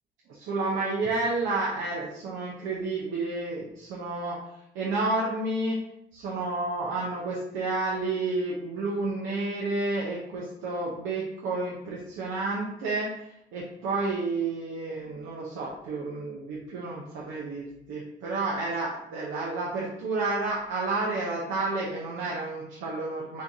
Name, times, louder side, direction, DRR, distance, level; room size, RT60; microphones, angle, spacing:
voice 1, 0.3-4.4 4.7-5.8 6.1-13.1 13.5-23.4, right 3 dB, 90° right, -4 dB, 0.8 m, -30 dB
4.4 x 2.6 x 3.5 m, 0.79 s
cardioid pair, 90°, 20 cm